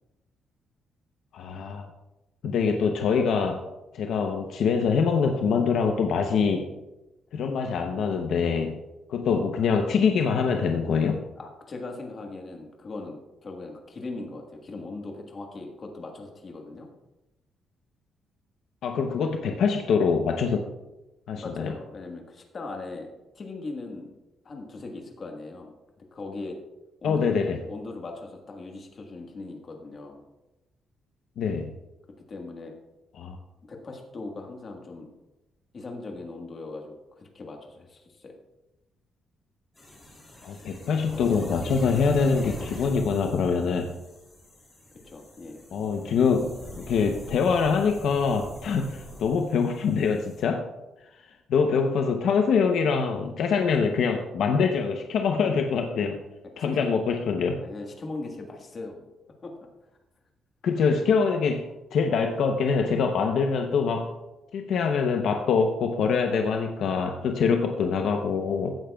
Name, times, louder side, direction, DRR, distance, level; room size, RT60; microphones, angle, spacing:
voice 1, 1.3-1.9 2.4-3.6 3.9-6.7 7.3-8.7 9.1-11.2 18.8-20.7 21.3-21.7 27.0-27.6 31.4-31.7 33.2-33.4 40.4-43.9 45.7-50.6 51.5-56.2 56.6-57.6 60.6-61.6 61.9-64.1 64.5-68.8, left 5 dB, 65° left, 4 dB, 0.7 m, -24 dB
voice 2, 11.4-16.9 21.3-23.1 23.3-24.2 24.4-25.7 26.1-26.6 27.0-27.4 27.7-30.2 32.3-32.7 33.7-35.1 35.7-38.3 45.0-45.6 56.5-57.0 57.6-59.1 59.4-59.5, left 3 dB, 30° left, 2 dB, 1.5 m, -39 dB
sound 1, 39.8-50.4, equal, 15° left, 3.8 m, -42 dB
15.5 x 8.8 x 2.3 m, 0.98 s
cardioid pair, 175°, 0 cm